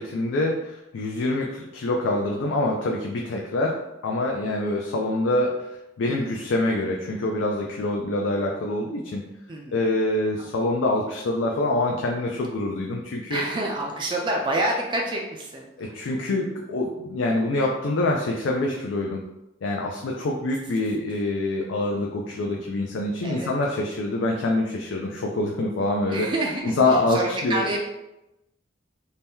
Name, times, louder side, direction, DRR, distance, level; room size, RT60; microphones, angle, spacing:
voice 1, 0.0-5.7 6.0-9.2 9.7-13.4 15.8-19.2 19.6-26.3 26.6-27.6, left 2 dB, 80° left, 0 dB, 0.4 m, -25 dB
voice 2, 6.0-6.5 9.5-9.9 13.3-16.2 23.2-23.5 26.1-27.8, right 1 dB, 25° right, -1 dB, 0.3 m, -28 dB
2.7 x 2.2 x 3.4 m, 0.92 s
head